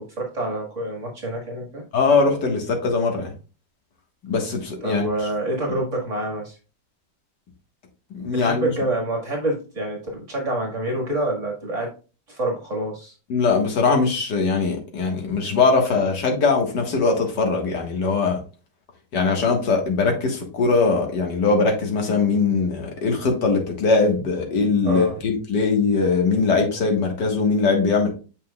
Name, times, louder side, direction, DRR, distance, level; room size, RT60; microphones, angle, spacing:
voice 1, 0.0-1.8 4.8-6.6 8.3-11.9 12.3-13.1 24.8-25.2, right 1 dB, 45° right, 1.9 m, -27 dB
voice 2, 1.9-3.3 4.2-5.1 8.1-8.7 13.3-18.4 19.1-28.1, left 4 dB, 70° left, 2.1 m, -21 dB
7.6 x 5.5 x 2.3 m
omnidirectional pair, 1.9 m